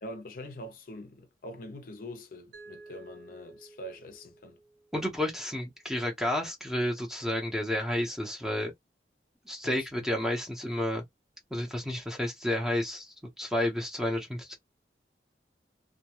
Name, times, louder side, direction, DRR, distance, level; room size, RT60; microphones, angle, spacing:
voice 1, 0.0-4.6 9.6-10.1, left 1 dB, 50° left, 0.5 m, -44 dB
Mallet percussion, 2.5-5.4, right 3 dB, 65° right, 1.0 m, -53 dB
voice 2, 4.9-8.7 9.5-11.0 11.5-14.5, left 1 dB, 5° right, 0.7 m, -31 dB
2.2 x 2.1 x 2.9 m
head